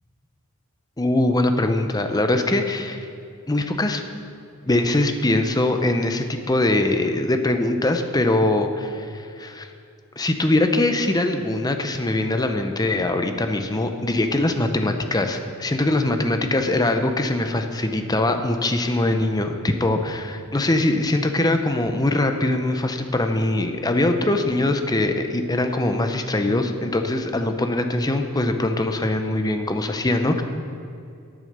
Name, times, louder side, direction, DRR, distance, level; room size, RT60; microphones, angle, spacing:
voice 1, 1.0-3.0 3.5-4.0 4.7-9.7 10.2-30.4, left 2 dB, 15° left, 6 dB, 0.7 m, -22 dB
9.8 x 8.9 x 6.6 m, 2.4 s
head